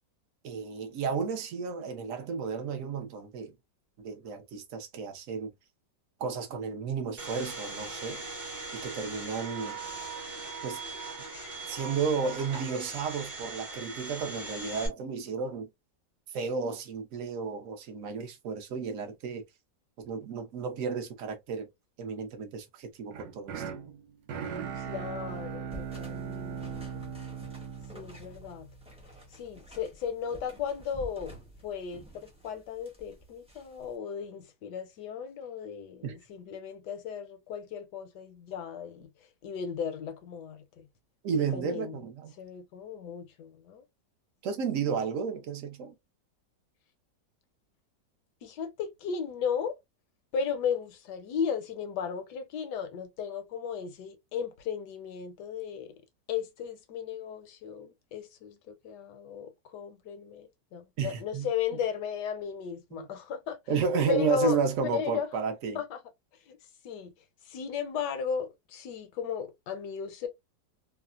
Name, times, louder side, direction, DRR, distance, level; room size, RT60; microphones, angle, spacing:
voice 1, 0.4-3.5 4.0-5.5 6.2-8.2 8.7-9.8 10.6-10.8 11.7-15.7 16.3-19.4 20.0-21.7 22.0-23.6 36.0-36.1 41.2-42.4 44.4-45.9 61.0-61.5 62.9-63.1 63.7-65.8, right 5 dB, 60° right, 1.0 m, -32 dB
Domestic sounds home sounds, 7.2-14.9, right 3 dB, 35° right, 0.9 m, -40 dB
sound 1, 23.1-29.2, right 7 dB, 90° right, 1.4 m, -39 dB
voice 2, 24.4-27.1 27.9-28.7 29.3-31.4 31.6-39.1 39.4-40.9 41.4-42.0 42.4-43.8 48.4-49.7 50.3-55.9 56.3-63.6 64.1-64.6 64.9-65.3 65.7-66.0 66.5-66.6 66.8-67.1 67.4-70.3, left 7 dB, 75° left, 1.1 m, -35 dB
sound 2, 25.7-33.9, right 1 dB, 10° right, 0.3 m, -50 dB
3.2 x 2.0 x 2.4 m
omnidirectional pair, 1.9 m